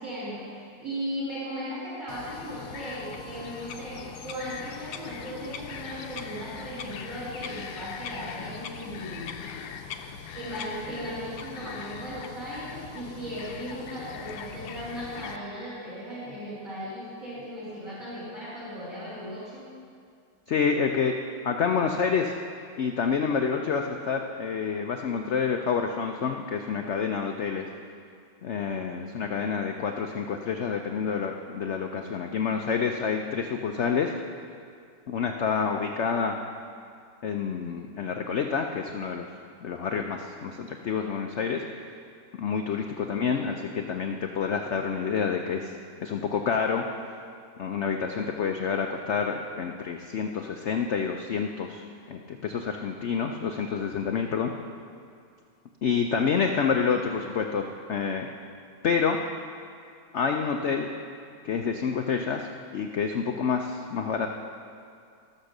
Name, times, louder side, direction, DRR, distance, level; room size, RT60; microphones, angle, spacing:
voice 1, 0.0-9.3 10.3-19.7 43.0-43.6, equal, 45° right, -10 dB, 3.1 m, -37 dB
Bird vocalization bird call bird song, 2.1-15.4, left 7 dB, 70° left, 1.1 m, -40 dB
voice 2, 20.5-21.2 21.4-22.4 22.8-27.7 28.4-34.1 35.1-36.4 37.2-39.3 39.6-41.6 42.4-46.9 47.6-54.5 55.8-58.3 58.8-59.2 60.1-60.9 61.4-64.3, left 6 dB, 90° left, 4 dB, 0.6 m, -28 dB
14.5 x 6.5 x 6.6 m, 2.3 s
omnidirectional pair, 2.0 m